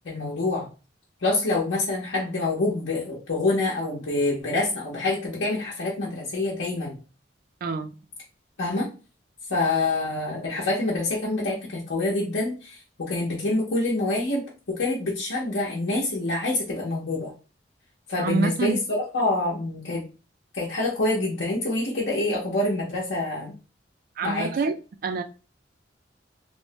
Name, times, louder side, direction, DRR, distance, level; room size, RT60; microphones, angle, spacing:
voice 1, 0.0-0.7 1.2-7.0 8.6-8.9 9.5-17.3 18.1-20.0 20.5-23.5 24.2-24.5, left 2 dB, 80° left, 0.8 m, -26 dB
voice 2, 7.6-7.9 18.2-18.8 24.2-24.7 25.0-25.2, right 4 dB, 50° right, 0.3 m, -26 dB
3.0 x 2.1 x 2.7 m
head